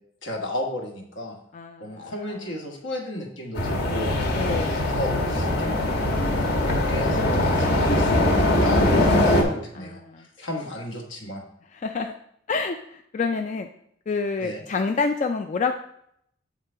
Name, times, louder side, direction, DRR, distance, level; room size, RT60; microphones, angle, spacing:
voice 1, 0.2-1.4 1.8-10.0 10.4-11.4 14.4-14.6, left 1 dB, 70° left, 1 dB, 1.4 m, -34 dB
voice 2, 1.5-2.3 4.3-4.7 9.7-10.3 11.7-12.1 12.5-13.7 14.1-15.7, left 4 dB, 40° left, 5 dB, 0.3 m, -28 dB
sound 1, 3.5-9.4, left 1 dB, 55° left, 1.4 m, -21 dB
8.2 x 3.8 x 4.4 m, 0.72 s
head